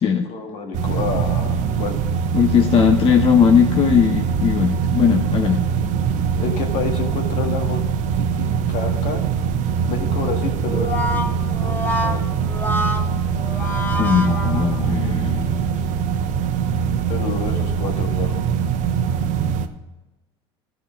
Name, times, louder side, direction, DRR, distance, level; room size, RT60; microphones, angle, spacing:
voice 1, 0.2-2.0 6.4-7.8 8.2-9.2 9.9-11.4 11.6-12.4 17.1-18.3, left 5 dB, 60° left, 3 dB, 1.8 m, -29 dB
sound 1, 0.7-19.7, right 7 dB, 60° right, 0.8 m, -22 dB
voice 2, 2.3-5.6 14.0-15.7, left 7 dB, 40° left, 4 dB, 0.9 m, -18 dB
Brass instrument, 10.6-15.1, left 1 dB, 15° left, 1.7 m, -27 dB
13.0 x 5.2 x 5.2 m, 1.1 s
hypercardioid pair, 75°, 15 cm